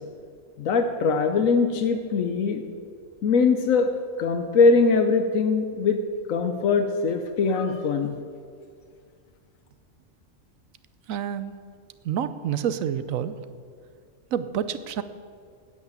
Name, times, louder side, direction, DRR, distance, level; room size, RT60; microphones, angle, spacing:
voice 1, 0.6-2.6 3.2-3.9 4.2-6.0 6.3-8.1, left 4 dB, 80° left, 7 dB, 1.2 m, -21 dB
voice 2, 11.1-11.5 12.0-13.4 14.3-15.0, right 9 dB, 85° right, 13 dB, 1.1 m, -28 dB
9.6 x 8.3 x 8.3 m, 2.2 s
omnidirectional pair, 1.4 m